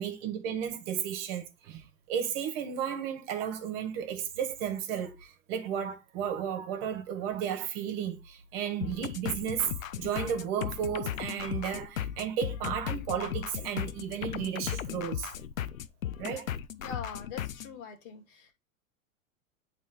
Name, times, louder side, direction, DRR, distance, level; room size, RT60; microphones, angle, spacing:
voice 1, 0.0-9.7 10.0-15.3 16.2-16.5, right 8 dB, 45° right, 1.3 m, -33 dB
sound 1, 8.8-17.7, left 10 dB, 75° left, 0.6 m, -36 dB
voice 2, 16.8-18.5, left 6 dB, 45° left, 1.8 m, -43 dB
8.9 x 3.4 x 3.4 m
figure-of-eight pair, 95°, 40 cm